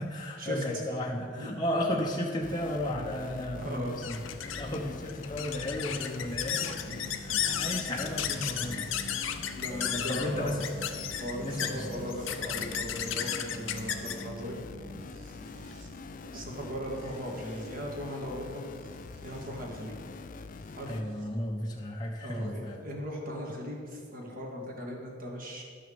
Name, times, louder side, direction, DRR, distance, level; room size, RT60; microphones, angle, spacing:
voice 1, 0.0-4.2 4.5-10.7 11.4-11.9 13.0-13.2 17.0-17.2 20.9-22.8, left 1 dB, 20° left, -2 dB, 0.8 m, -34 dB
sound 1, 2.4-21.0, left 3 dB, 40° left, 0.4 m, -45 dB
sound 2, 3.3-15.8, left 9 dB, 85° left, 0.8 m, -35 dB
voice 2, 3.6-3.9 6.8-6.9 9.5-10.6 11.2-14.6 16.3-18.6 19.2-20.0 20.8-21.0 22.2-25.6, equal, 45° right, -1 dB, 2.1 m, -38 dB
sound 3, 4.2-21.3 22.4-22.5, left 1 dB, 70° right, 1.5 m, -48 dB
12.0 x 6.3 x 7.0 m, 2.1 s
head